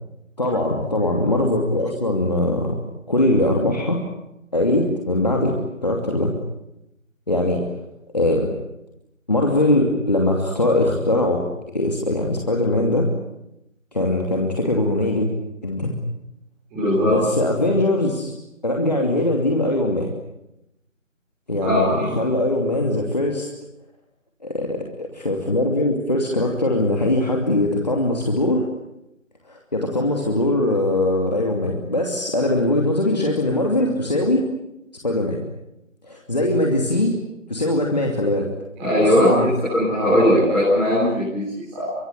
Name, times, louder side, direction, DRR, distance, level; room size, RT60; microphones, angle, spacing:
voice 1, 0.4-2.8 3.1-4.0 4.5-5.5 5.8-6.3 7.3-7.6 8.1-8.5 9.3-11.4 11.7-13.1 13.9-15.3 15.6-15.9 17.0-18.3 18.6-20.1 21.5-23.5 24.4-28.6 29.5-34.5 35.0-35.4 36.0-37.2 37.5-38.5 39.0-39.5, left 1 dB, 30° left, 0 dB, 2.8 m, -21 dB
voice 2, 16.7-17.2 21.6-22.1 38.8-41.9, equal, 5° right, -14 dB, 5.2 m, -19 dB
24.5 x 22.5 x 9.5 m, 0.87 s
figure-of-eight pair, 175°, 39 cm